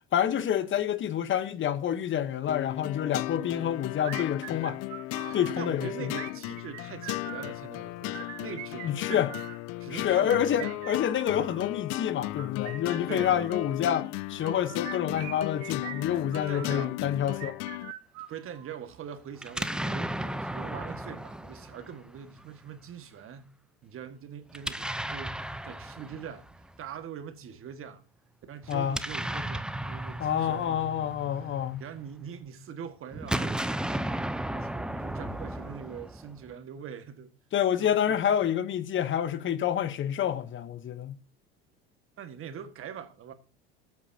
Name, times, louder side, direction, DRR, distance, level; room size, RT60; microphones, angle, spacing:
voice 1, 0.1-4.8 5.3-6.1 8.8-9.3 9.9-17.6 28.7-29.0 30.2-31.8 37.5-41.2, left 10 dB, 40° left, 1.0 m, -28 dB
sound 1, 2.5-17.9, left 19 dB, 55° left, 0.6 m, -36 dB
sound 2, 4.0-5.5 6.1-7.5 8.0-9.6 10.1-11.7 12.2-13.7 14.4-16.7 17.3-18.8, right 13 dB, 60° right, 1.5 m, -43 dB
voice 2, 5.1-9.3 9.8-10.9 11.3-11.7 13.1-13.5 16.5-17.0 18.3-23.5 23.8-28.0 28.5-34.1 34.5-37.3 37.8-38.2 42.2-43.3, right 8 dB, 45° right, 1.7 m, -43 dB
Explosion, 19.4-22.4 24.5-26.7 28.6-32.1 33.1-36.5, right 1 dB, 5° right, 0.6 m, -35 dB
18.5 x 8.3 x 2.8 m
hypercardioid pair, 80°, 31 cm